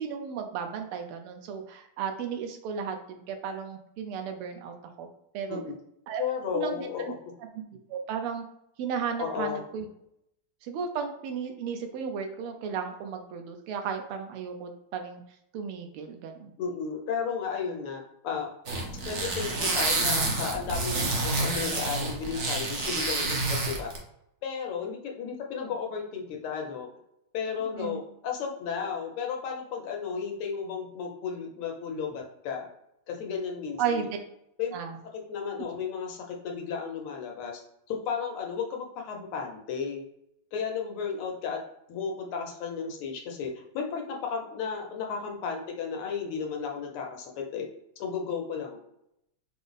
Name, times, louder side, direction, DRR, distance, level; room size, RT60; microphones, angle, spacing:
voice 1, 0.0-5.1 5.3-5.6 6.1-6.2 6.5-6.9 7.9-8.4 8.8-9.9 10.6-15.2 15.5-16.5 27.7-28.0 33.8-34.2 34.7-35.0, right 6 dB, 85° right, 5 dB, 1.6 m, -34 dB
voice 2, 6.2-7.1 9.2-9.6 16.6-18.5 19.1-23.9 24.4-26.9 27.3-32.7 33.1-34.1 34.6-34.7 35.3-37.6 37.9-40.0 40.5-41.6 41.9-47.7 48.0-48.8, left 6 dB, 90° left, 1 dB, 1.7 m, -34 dB
sound 1, 18.7-24.0, right 2 dB, 65° right, 0.6 m, -28 dB
5.1 x 2.0 x 3.9 m, 0.78 s
omnidirectional pair, 2.4 m